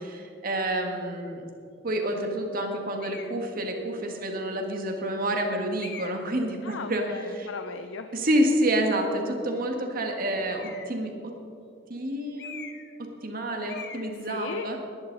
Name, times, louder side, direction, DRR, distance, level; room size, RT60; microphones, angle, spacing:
voice 1, 0.0-1.4 1.8-7.0 7.3-7.5 8.1-11.3 11.9-12.6 13.2-14.8, right 1 dB, 50° right, 2 dB, 1.7 m, -28 dB
sound 1, 3.0-3.4 4.2-4.3 5.8-6.3 10.5-11.0 12.4-13.0 13.2-13.4 13.7-14.1, left 6 dB, 60° left, 1.1 m, -42 dB
voice 2, 6.6-8.1 14.2-14.8, left 4 dB, 85° left, 7 dB, 0.7 m, -37 dB
19.5 x 11.0 x 4.0 m, 2.5 s
head